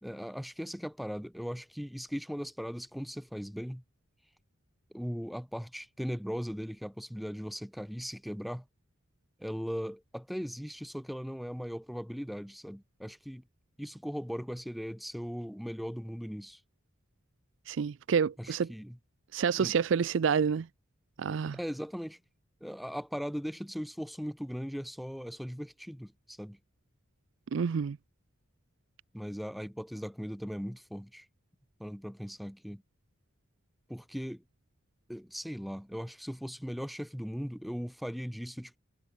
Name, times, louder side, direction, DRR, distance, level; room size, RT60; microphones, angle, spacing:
voice 1, 0.0-3.8 4.9-8.6 9.4-13.4 13.8-16.6 18.4-19.0 19.6-19.8 21.5-22.2 22.6-26.6 29.1-31.3 31.8-32.8 33.9-34.4 35.1-38.8, equal, ahead, 1.2 m, -38 dB
voice 2, 17.7-18.7 19.3-20.7 21.2-21.6 27.5-28.0, right 6 dB, 65° right, 0.4 m, -28 dB
head